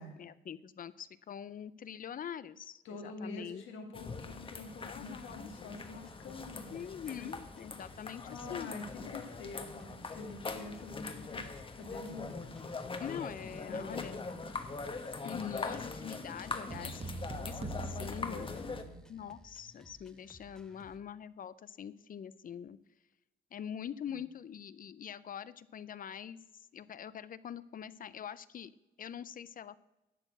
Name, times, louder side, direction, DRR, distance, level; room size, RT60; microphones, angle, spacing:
voice 1, 0.2-4.1 4.8-5.5 6.7-8.7 13.0-14.2 15.2-18.6 19.1-22.8 23.5-26.4 26.7-28.7 29.0-29.8, left 8 dB, 45° left, 17 dB, 0.5 m, -44 dB
voice 2, 2.8-6.9 7.2-7.3 8.2-12.3 13.4-14.4 16.7-17.0 17.7-19.0 24.1-24.2, left 3 dB, 90° left, 3 dB, 2.0 m, -47 dB
sound 1, 3.9-18.8, left 4 dB, 25° left, 1.0 m, -42 dB
sound 2, 4.8-21.0, equal, 5° left, 0.9 m, -59 dB
sound 3, 16.7-19.2, right 2 dB, 30° right, 1.1 m, -43 dB
11.5 x 4.4 x 7.9 m, 0.97 s
cardioid pair, 90°, 20 cm